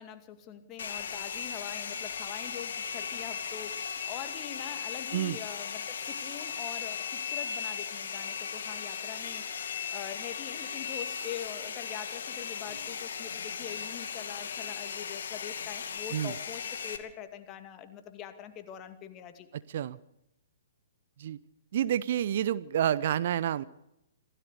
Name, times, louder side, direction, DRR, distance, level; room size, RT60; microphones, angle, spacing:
voice 1, 0.0-19.5, left 10 dB, 25° left, 8 dB, 2.4 m, -44 dB
Domestic sounds home sounds, 0.8-17.0, left 7 dB, 55° left, 2.4 m, -37 dB
voice 2, 21.7-23.6, right 10 dB, 45° right, 17 dB, 0.7 m, -28 dB
27.0 x 17.0 x 6.8 m, 0.84 s
figure-of-eight pair, 120°, 0 cm